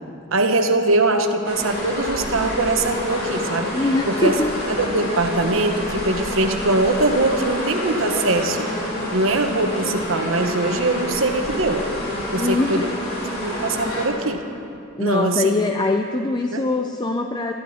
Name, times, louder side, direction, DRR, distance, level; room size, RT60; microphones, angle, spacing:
voice 1, 0.3-3.7 4.1-4.3 4.7-8.7 9.1-11.9 12.3-12.9 13.3-14.4 15.0-15.5 16.5-16.6, right 2 dB, 70° right, 6 dB, 1.2 m, -22 dB
sound 1, 1.4-14.1, left 1 dB, 50° left, 4.0 m, -28 dB
voice 2, 3.7-4.5 12.4-13.0 13.4-13.9 15.0-17.5, left 2 dB, 20° left, 4 dB, 0.5 m, -23 dB
21.5 x 14.5 x 4.3 m, 2.5 s
head